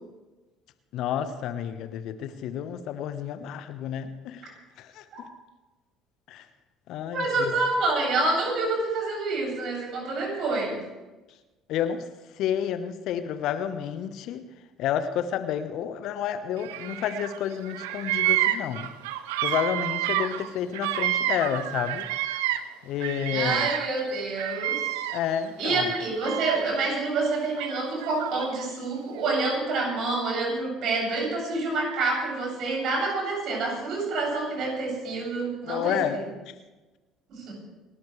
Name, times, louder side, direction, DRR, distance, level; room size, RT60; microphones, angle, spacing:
voice 1, 0.9-5.3 6.3-6.4 6.9-7.5 11.7-12.1 12.3-14.4 14.8-18.9 19.4-22.1 22.8-23.7 25.1-25.9 35.7-36.2, left 9 dB, 60° left, 10 dB, 1.2 m, -30 dB
voice 2, 7.1-10.8 23.3-24.8 25.6-36.2 37.3-37.5, right 3 dB, 55° right, -1 dB, 7.6 m, -27 dB
Bird vocalization bird call bird song, 16.6-17.4 17.6-22.7 23.0-25.4 25.9-26.8 27.6-28.7, right 13 dB, 70° right, 0.8 m, -29 dB
29.5 x 13.0 x 3.4 m, 1.1 s
figure-of-eight pair, 55°, 0 cm